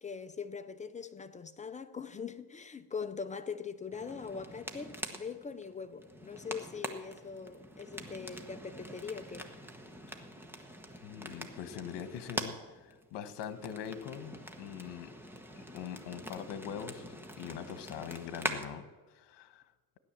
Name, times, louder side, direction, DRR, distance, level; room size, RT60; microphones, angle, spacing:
voice 1, 0.0-9.5, left 5 dB, 20° left, 0.4 m, -42 dB
sound 1, 3.9-18.6, equal, 5° right, 1.0 m, -44 dB
voice 2, 11.0-15.1 15.6-19.7, left 8 dB, 75° left, 1.3 m, -43 dB
16.0 x 11.0 x 7.4 m
cardioid pair, 155°, 42 cm